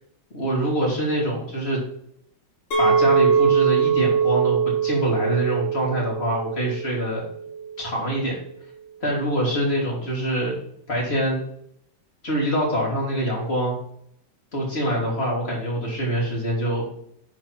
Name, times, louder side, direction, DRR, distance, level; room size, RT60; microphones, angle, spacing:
voice 1, 0.3-1.8 2.8-7.3 7.8-8.4 9.0-10.6 10.9-11.4 12.2-13.8 14.5-16.9, right 1 dB, 35° left, -3 dB, 3.4 m, -25 dB
Chink clink, 2.7-7.9, right 6 dB, 85° left, 2.7 m, -22 dB
11.0 x 4.5 x 4.5 m, 0.70 s
omnidirectional pair, 1.9 m